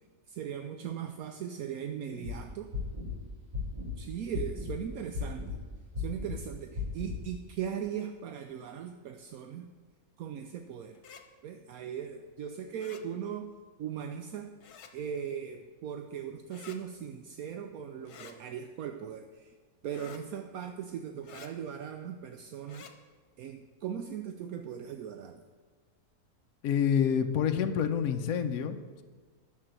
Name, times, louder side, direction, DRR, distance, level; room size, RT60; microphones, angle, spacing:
voice 1, 0.3-2.7 4.0-5.4 6.0-9.7 10.2-11.0 11.4-13.5 13.8-14.5 14.9-19.5 19.8-22.9 23.4-25.4, right 8 dB, 75° right, 7 dB, 1.1 m, -39 dB
sound 1, 2.1-2.3 2.7-3.2 3.5-4.0 4.3-4.8 5.1-5.6 5.9-6.4 6.8-7.2, left 5 dB, 15° right, 2.7 m, -35 dB
sound 2, 10.9-11.2 12.8-13.0 14.6-14.9 16.5-16.8 18.1-18.4 19.9-20.2 21.2-21.5 22.6-22.9, left 7 dB, 90° left, 1.5 m, -50 dB
voice 2, 26.6-29.0, left 8 dB, 70° left, 6 dB, 1.1 m, -28 dB
10.5 x 6.7 x 7.6 m, 1.5 s
omnidirectional pair, 1.6 m